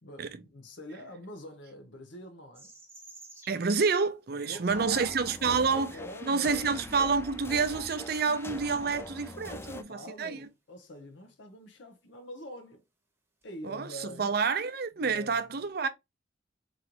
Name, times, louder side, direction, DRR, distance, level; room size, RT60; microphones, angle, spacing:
voice 1, 0.0-2.7 4.3-6.7 7.8-7.9 8.9-12.8 13.4-14.3 15.0-15.7, equal, 80° left, 0.9 m, -46 dB
sound 1, 2.5-4.0 5.4-5.5 6.4-6.6 6.9-7.0 8.6-8.7 9.2-9.3 10.8-11.0 13.4-13.5, right 2 dB, 10° right, 0.9 m, -52 dB
voice 2, 3.5-5.9 6.3-9.6 9.9-10.5 13.6-15.9, right 5 dB, 55° right, 0.5 m, -28 dB
sound 2, 4.7-9.8, left 2 dB, 15° left, 0.4 m, -43 dB
3.8 x 3.2 x 2.9 m
head